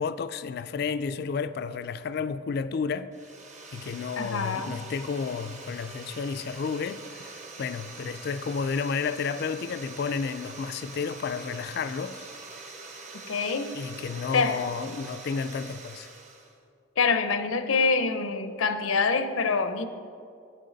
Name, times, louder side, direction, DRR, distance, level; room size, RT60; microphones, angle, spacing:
voice 1, 0.0-3.1 3.7-12.3 13.7-16.1, left 5 dB, 50° left, 0.3 m, -31 dB
sound 1, 3.1-16.6, right 3 dB, 35° right, 0.9 m, -44 dB
voice 2, 4.2-4.7 13.3-13.7 14.3-14.6 17.0-19.9, left 4 dB, 85° left, 0.6 m, -25 dB
9.1 x 8.6 x 3.9 m
head